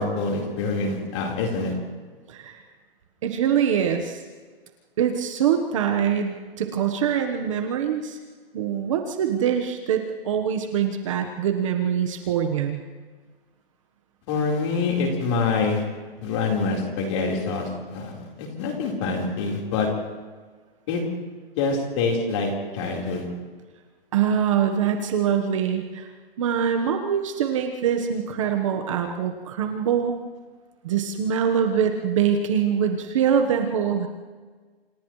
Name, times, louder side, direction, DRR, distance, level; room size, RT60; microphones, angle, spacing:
voice 1, 0.0-1.7 14.3-15.8 16.2-18.1 18.4-19.9 20.9-21.0 21.6-23.3, left 4 dB, 30° left, -1 dB, 4.3 m, -25 dB
voice 2, 2.3-2.6 3.2-4.2 5.0-8.2 8.5-12.8 24.1-26.1 26.4-30.2 30.8-34.1, right 8 dB, 30° right, 4 dB, 1.3 m, -24 dB
29.0 x 28.0 x 3.2 m, 1.5 s
hypercardioid pair, 170°, 30 cm